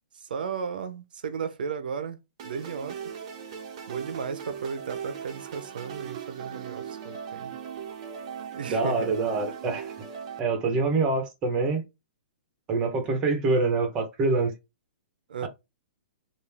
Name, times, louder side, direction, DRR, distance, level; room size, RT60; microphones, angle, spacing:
voice 1, 0.1-2.2 2.4-3.0 3.9-7.6 8.5-9.1 15.3-15.5, right 6 dB, 65° right, 0.8 m, -35 dB
sound 1, 2.4-10.4, right 7 dB, 35° right, 0.8 m, -39 dB
voice 2, 8.7-9.9 10.4-11.8 12.7-14.5 15.4-15.5, right 3 dB, 15° right, 1.0 m, -25 dB
5.1 x 2.6 x 3.4 m
hypercardioid pair, 170°, 5 cm